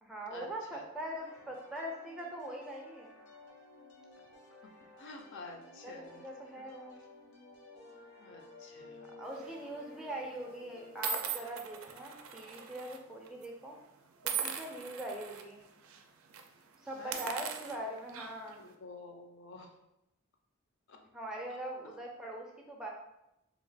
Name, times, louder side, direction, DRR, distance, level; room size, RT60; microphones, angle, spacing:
voice 1, 0.0-3.1 5.8-7.0 9.2-13.8 14.2-15.6 16.8-18.6 21.1-22.9, right 1 dB, 5° right, -1 dB, 0.4 m, -42 dB
sound 1, 1.2-11.4, left 3 dB, 80° left, 0.9 m, -54 dB
voice 2, 5.0-6.2 6.9-7.0 8.2-9.1 17.0-17.3 18.6-19.7 20.9-21.0, left 3 dB, 55° left, 3 dB, 0.5 m, -49 dB
sound 2, 9.4-9.7 10.4-10.5 11.0-13.0 13.3-13.5 14.2-15.4 15.8-16.0 16.3-16.5 17.0-18.5, right 7 dB, 70° right, 0.4 m, -39 dB
2.9 x 2.3 x 4.0 m, 0.87 s
head